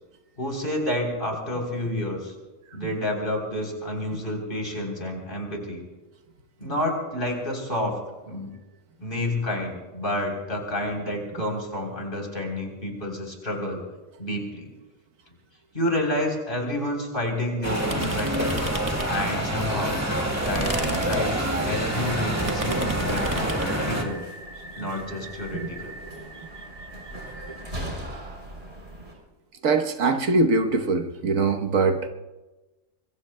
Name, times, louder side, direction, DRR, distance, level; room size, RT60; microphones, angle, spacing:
voice 1, 0.4-2.3 2.7-5.8 6.6-8.0 8.3-8.5 9.0-13.8 14.2-14.7 15.7-18.6 19.1-20.0 20.4-21.3 21.6-24.2 24.7-26.0, left 1 dB, 40° left, 0 dB, 3.8 m, -29 dB
sound 1, 17.6-24.0, right 1 dB, 10° right, 1.9 m, -26 dB
sound 2, 17.9-19.4 19.8-23.8, right 2 dB, 25° right, 1.4 m, -34 dB
sound 3, 21.6-29.1, right 1 dB, 45° right, 3.6 m, -39 dB
voice 2, 29.6-32.1, right 3 dB, 75° right, 5 dB, 1.4 m, -22 dB
25.5 x 22.0 x 2.2 m, 1.1 s
omnidirectional pair, 1.4 m